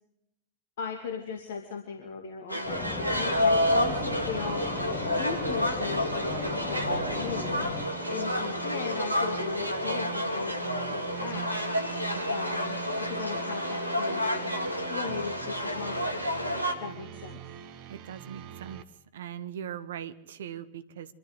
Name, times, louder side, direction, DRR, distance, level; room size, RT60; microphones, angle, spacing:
voice 1, 0.8-4.6 5.2-7.7 8.1-11.6 12.3-12.8 13.1-16.2 16.8-17.4, left 5 dB, 60° left, 3 dB, 2.4 m, -37 dB
sound 1, 2.5-16.7, left 1 dB, 90° right, 2.2 m, -30 dB
sound 2, 2.6-7.9, left 3 dB, 20° left, 2.9 m, -37 dB
sound 3, 3.8-18.8, right 11 dB, 40° right, 1.5 m, -43 dB
voice 2, 17.9-18.8 19.1-21.1, right 9 dB, 60° right, 13 dB, 1.3 m, -40 dB
25.5 x 13.0 x 8.0 m, 0.79 s
figure-of-eight pair, 90°, 0 cm